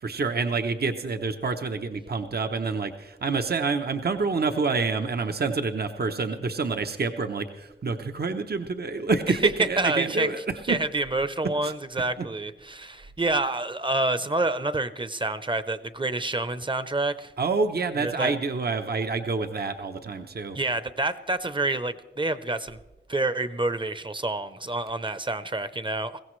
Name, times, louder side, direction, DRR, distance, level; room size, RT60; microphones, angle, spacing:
voice 1, 0.0-10.4 10.7-10.8 11.6-11.7 17.4-20.6, right 4 dB, 60° right, 7 dB, 0.8 m, -27 dB
voice 2, 9.3-10.3 10.7-17.3 18.0-18.3 20.5-22.8 23.1-26.2, right 2 dB, 25° right, 13 dB, 0.7 m, -28 dB
21.0 x 16.0 x 3.2 m, 1.0 s
wide cardioid pair, 85°, 18 cm